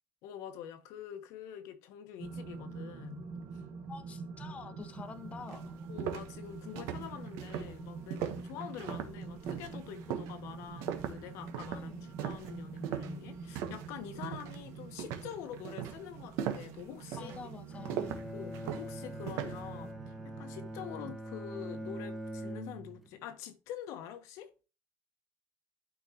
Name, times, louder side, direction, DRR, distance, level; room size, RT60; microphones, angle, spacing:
voice 1, 0.2-3.6 5.9-17.4 18.3-24.5, left 10 dB, 70° left, 1.1 m, -46 dB
sound 1, 2.2-21.1, right 5 dB, 40° right, 1.2 m, -46 dB
voice 2, 3.9-5.8 11.7-12.1 17.1-18.2, left 5 dB, 25° left, 0.8 m, -47 dB
sound 2, 5.0-5.1 5.5-13.9 14.2-14.6 15.0-19.7, right 9 dB, 75° right, 1.1 m, -39 dB
Bowed string instrument, 17.7-23.2, right 1 dB, ahead, 1.1 m, -43 dB
12.0 x 4.5 x 2.9 m
cardioid pair, 135°, 5 cm